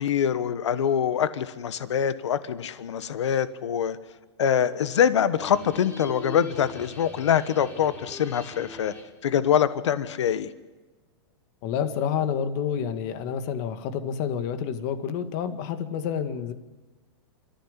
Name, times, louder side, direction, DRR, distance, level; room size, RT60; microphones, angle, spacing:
voice 1, 0.0-4.0 4.4-8.9 9.2-10.5, left 8 dB, 80° left, 13 dB, 1.3 m, -24 dB
sound 1, 5.4-9.2, left 2 dB, 10° left, 3.0 m, -43 dB
voice 2, 11.6-16.5, left 8 dB, 40° left, 10 dB, 1.9 m, -29 dB
27.0 x 14.5 x 8.2 m, 1.2 s
hypercardioid pair, 155°, 15 cm